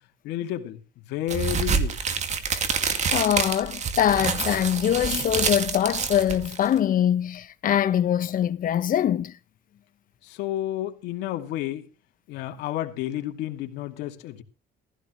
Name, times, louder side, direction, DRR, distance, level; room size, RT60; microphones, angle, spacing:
voice 1, 0.2-0.8 1.1-2.0 10.2-11.9 12.3-14.4, left 13 dB, 90° left, 2.5 m, -31 dB
sound 1, 1.3-6.8, right 6 dB, 45° right, 2.3 m, -27 dB
voice 2, 3.1-9.3, left 10 dB, 55° left, 1.3 m, -23 dB
15.5 x 15.0 x 3.2 m
cardioid pair, 110°, 17 cm